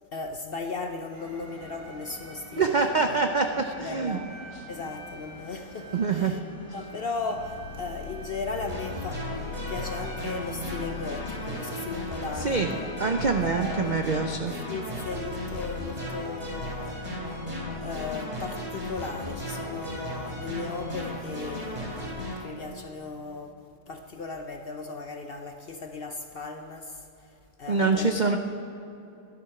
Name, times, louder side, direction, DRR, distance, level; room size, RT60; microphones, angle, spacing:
voice 1, 0.1-3.2 3.6-4.4 4.7-6.4 6.7-12.9 13.5-14.1 14.7-17.1 17.8-23.5 23.9-28.4, left 3 dB, 55° left, 0.7 m, -37 dB
sound 1, 1.1-14.2, equal, 85° right, 2.8 m, -46 dB
voice 2, 2.6-4.2 5.9-6.4 12.4-12.7 13.0-14.6 27.7-28.4, right 4 dB, 60° right, 0.4 m, -25 dB
sound 2, 7.3-22.3, left 7 dB, 80° left, 1.2 m, -41 dB
sound 3, 8.7-22.4, equal, 25° right, 3.8 m, -36 dB
13.5 x 11.5 x 5.8 m
omnidirectional pair, 1.6 m